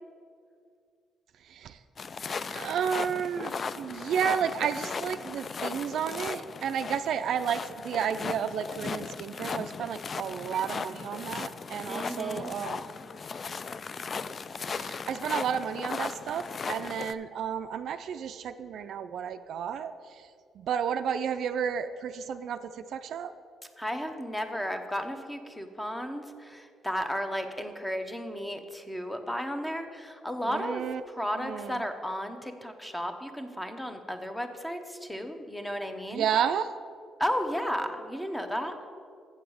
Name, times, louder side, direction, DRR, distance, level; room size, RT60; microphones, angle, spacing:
voice 1, 1.5-1.8 2.3-12.8 14.6-20.3 20.6-23.3 30.4-31.0 31.4-31.8 36.1-36.7, right 8 dB, 70° right, 10 dB, 0.3 m, -32 dB
sound 1, 2.0-17.1, left 5 dB, 45° left, 0.3 m, -37 dB
voice 2, 11.9-12.5 23.8-36.3 37.2-38.7, equal, 10° left, 7 dB, 0.9 m, -34 dB
7.7 x 7.0 x 6.4 m, 2.3 s
cardioid pair, 90°, 0 cm